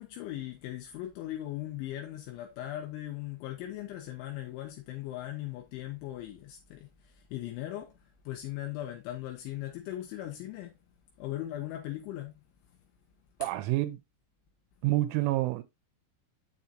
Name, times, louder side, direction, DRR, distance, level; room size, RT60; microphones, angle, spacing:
voice 1, 0.0-10.8 11.2-12.3 13.4-13.5, left 14 dB, 80° left, 3.2 m, -39 dB
voice 2, 13.4-14.0 14.8-15.6, right 17 dB, 90° right, 3.2 m, -28 dB
7.7 x 7.0 x 2.7 m
omnidirectional pair, 5.7 m